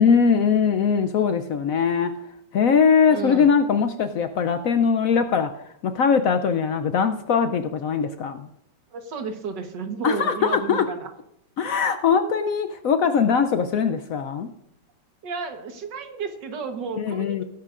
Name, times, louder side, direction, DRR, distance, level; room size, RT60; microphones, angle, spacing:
voice 1, 0.0-2.1 2.5-5.5 5.8-8.5 10.0-10.8 11.6-14.5 17.0-17.4, left 6 dB, 70° left, 8 dB, 0.8 m, -21 dB
voice 2, 3.1-3.5 8.9-11.1 15.2-17.4, right 4 dB, 80° right, 6 dB, 1.9 m, -32 dB
19.0 x 10.5 x 2.5 m, 0.77 s
omnidirectional pair, 1.9 m